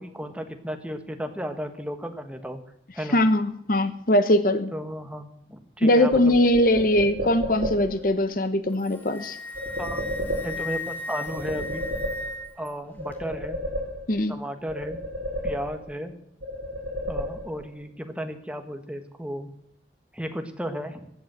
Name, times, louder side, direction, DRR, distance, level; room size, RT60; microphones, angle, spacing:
voice 1, 0.0-2.6 2.9-3.2 4.7-6.3 9.8-10.0 10.4-11.8 12.6-13.6 14.3-15.0 15.4-16.1 17.1-19.5 20.1-21.1, equal, 5° right, 6 dB, 1.3 m, -34 dB
voice 2, 3.1-4.7 5.8-9.4 14.1-14.3, left 1 dB, 50° left, 10 dB, 0.9 m, -21 dB
sound 1, 6.1-8.1 9.5-10.9 11.3-12.6 13.0-14.3 14.7-16.1 16.4-17.8, equal, 60° right, 7.2 m, -32 dB
Wind instrument woodwind instrument, 8.7-12.7, left 2 dB, 10° left, 1.7 m, -36 dB
15.5 x 8.4 x 7.4 m, 0.74 s
head